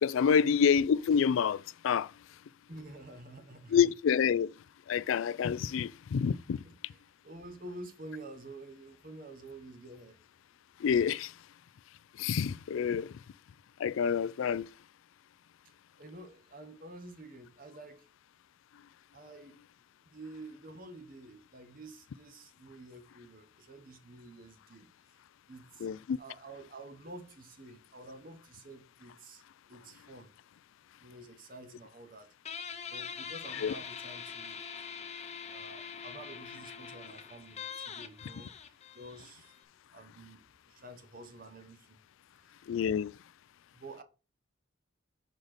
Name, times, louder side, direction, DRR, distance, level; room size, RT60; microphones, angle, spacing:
voice 1, 0.0-2.1 3.7-4.5 4.9-6.6 10.8-11.3 12.2-13.1 13.8-14.7 25.8-26.2 33.6-33.7 42.7-43.1, left 7 dB, 70° left, 0.3 m, -27 dB
voice 2, 2.7-3.8 6.6-10.2 16.0-18.1 19.1-19.6 20.0-24.9 25.5-25.9 26.2-29.4 29.7-30.3 31.0-32.3 32.9-34.6 35.5-38.5 38.9-39.5 39.9-42.0 43.7-44.0, right 2 dB, 40° right, 1.0 m, -49 dB
Guitar, 32.4-39.6, left 6 dB, 30° left, 0.7 m, -43 dB
6.3 x 4.0 x 5.0 m
head